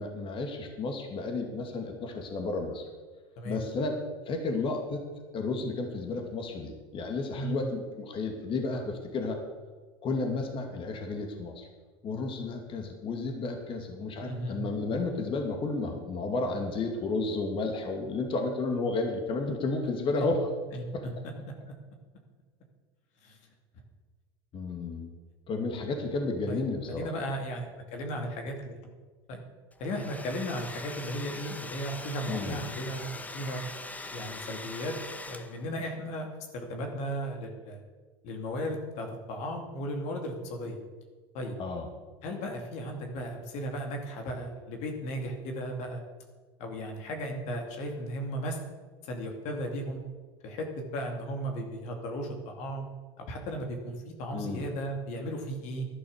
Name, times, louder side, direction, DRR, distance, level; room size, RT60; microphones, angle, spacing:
voice 1, 0.0-2.8 3.4-4.0 4.3-5.1 5.3-9.4 10.0-11.7 12.0-20.5 20.9-21.0 24.5-25.1 25.5-27.1 32.3-32.6 41.6-41.9 54.3-54.7, left 3 dB, 40° left, 4 dB, 2.5 m, -32 dB
voice 2, 14.3-14.6 20.2-20.3 20.7-20.8 23.2-23.4 26.5-26.6 26.9-28.8 29.3-29.4 29.8-33.6 34.1-34.9 35.2-37.8 38.2-40.8 41.3-41.6 42.2-46.0 46.6-48.6 49.0-50.0 50.4-52.9 53.2-55.9, equal, 60° left, 3 dB, 2.4 m, -35 dB
Domestic sounds home sounds, 29.7-35.8, left 2 dB, 10° left, 1.1 m, -42 dB
11.5 x 11.0 x 6.7 m, 1.4 s
supercardioid pair, 95°, 13 cm